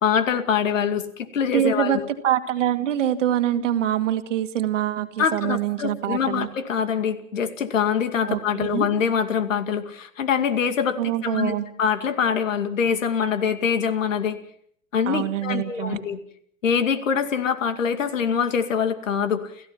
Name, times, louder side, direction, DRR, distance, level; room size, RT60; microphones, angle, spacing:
voice 1, 0.0-2.1 5.2-14.4 14.9-16.2 16.6-19.5, left 7 dB, 70° left, 8 dB, 2.4 m, -24 dB
voice 2, 1.5-2.0 2.2-6.5 8.3-8.9 11.0-11.6 15.1-16.0, right 11 dB, 65° right, 7 dB, 2.3 m, -24 dB
29.5 x 15.0 x 5.9 m, 0.64 s
figure-of-eight pair, 95°, 40 cm